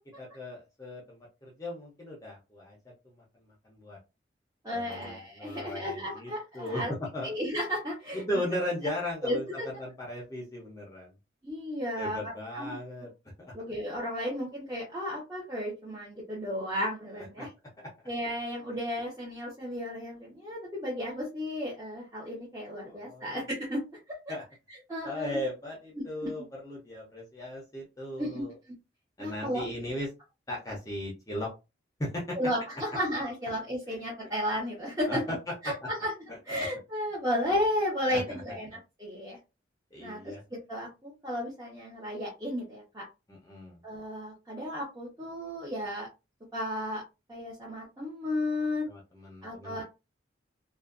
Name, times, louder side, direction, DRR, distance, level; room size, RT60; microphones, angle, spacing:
voice 1, 0.2-2.8 3.1-4.0 4.7-6.8 7.1-7.3 8.1-11.1 12.0-13.1 13.4-13.5 17.4-17.5 22.9-23.4 24.3-24.4 25.0-28.5 29.2-30.1 30.5-31.5 32.0-32.4 33.9-34.0 35.1-35.4 36.3-36.4 38.1-38.2 39.9-40.4 43.3-43.8 48.9-49.8, left 1 dB, 20° left, -2 dB, 0.5 m, -37 dB
voice 2, 4.6-6.9 7.2-8.2 9.2-9.7 11.4-12.8 13.5-17.5 18.1-23.8 24.1-24.3 24.9-25.4 26.0-26.3 28.2-28.8 29.2-29.6 32.3-35.2 35.6-36.1 36.5-39.4 40.0-40.3 40.7-43.1 43.8-46.1 46.5-47.0 47.3-48.9 49.4-49.8, left 1 dB, 20° right, -6 dB, 0.7 m, -33 dB
2.4 x 2.2 x 2.4 m, 0.26 s
head